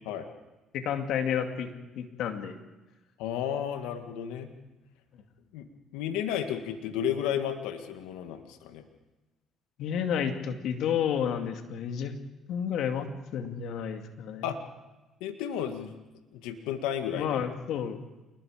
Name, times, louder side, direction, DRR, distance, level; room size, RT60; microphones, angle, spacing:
voice 1, 0.7-1.7 2.0-2.6 9.8-12.2 12.5-14.5 17.1-18.0, left 8 dB, 70° left, 5 dB, 2.4 m, -31 dB
voice 2, 3.2-4.5 5.5-5.7 5.9-8.8 14.4-14.6 15.2-15.9 16.3-17.5, left 9 dB, 85° left, 6 dB, 1.8 m, -32 dB
28.0 x 21.0 x 5.1 m, 1.1 s
supercardioid pair, 75°, 0 cm